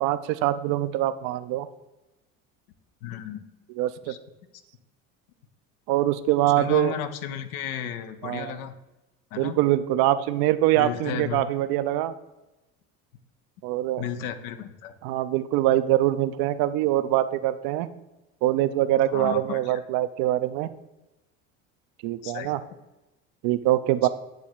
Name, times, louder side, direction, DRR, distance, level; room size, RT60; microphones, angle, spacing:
voice 1, 0.0-1.7 3.7-4.1 5.9-7.0 8.2-8.6 9.4-12.1 13.6-14.0 15.0-17.9 18.4-20.7 22.0-22.6 23.4-24.1, right 14 dB, 60° right, 12 dB, 0.5 m, -24 dB
voice 2, 3.0-3.4 4.1-4.2 6.5-8.7 9.3-9.6 10.8-11.4 14.0-14.9 19.1-19.8 22.2-22.5 24.0-24.1, left 9 dB, 80° left, 9 dB, 0.8 m, -33 dB
9.0 x 3.1 x 4.5 m, 1.0 s
hypercardioid pair, 75°, 43 cm